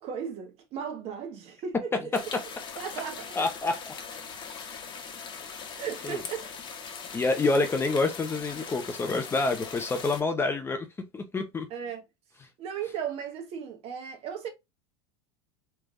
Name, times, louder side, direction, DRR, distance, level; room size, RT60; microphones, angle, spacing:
voice 1, 0.0-2.1 2.8-3.3 5.7-6.5 11.7-12.0 12.6-14.5, right 7 dB, 45° right, 1.3 m, -36 dB
sound 1, 2.1-10.2, left 6 dB, 35° left, 1.1 m, -41 dB
voice 2, 3.4-4.0 6.0-6.2 7.1-10.9 11.1-11.7, left 3 dB, 15° left, 0.6 m, -27 dB
3.4 x 3.3 x 2.5 m
supercardioid pair, 120°, 14 cm